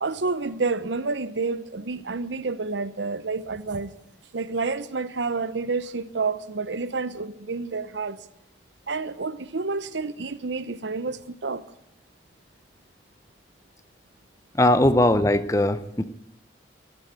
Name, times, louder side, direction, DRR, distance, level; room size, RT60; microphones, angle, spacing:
voice 1, 0.0-3.9 4.3-8.2 8.9-11.6, right 4 dB, 80° right, 0.8 m, -29 dB
voice 2, 14.6-16.0, left 1 dB, 15° left, 0.6 m, -20 dB
14.0 x 10.5 x 9.2 m
head